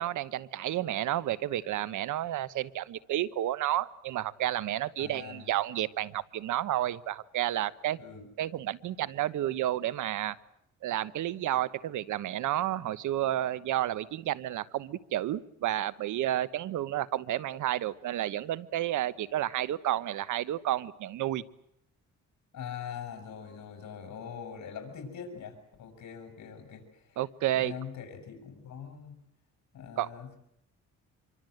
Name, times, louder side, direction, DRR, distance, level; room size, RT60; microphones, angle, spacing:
voice 1, 0.0-8.0 8.4-10.4 10.8-21.4 27.2-27.7 30.0-30.1, right 13 dB, 80° right, 17 dB, 1.2 m, -31 dB
voice 2, 5.0-5.5 8.0-8.3 22.5-27.2 27.5-29.2 29.7-30.4, left 7 dB, 65° left, 4 dB, 6.5 m, -43 dB
26.0 x 24.0 x 7.9 m, 0.75 s
cardioid pair, 90°, 30 cm